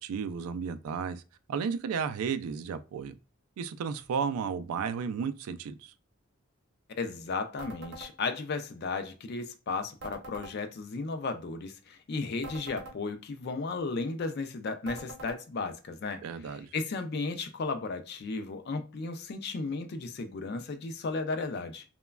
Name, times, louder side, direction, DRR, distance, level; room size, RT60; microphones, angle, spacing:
voice 1, 0.0-1.2 1.5-3.2 3.6-5.9 16.2-16.7, right 6 dB, 80° right, 0.3 m, -33 dB
voice 2, 7.0-21.8, left 3 dB, 50° left, 0.3 m, -34 dB
sound 1, 7.6-8.1 10.0-10.5 12.4-13.0 14.9-15.4, right 2 dB, 55° right, 0.7 m, -44 dB
3.0 x 2.2 x 2.2 m
head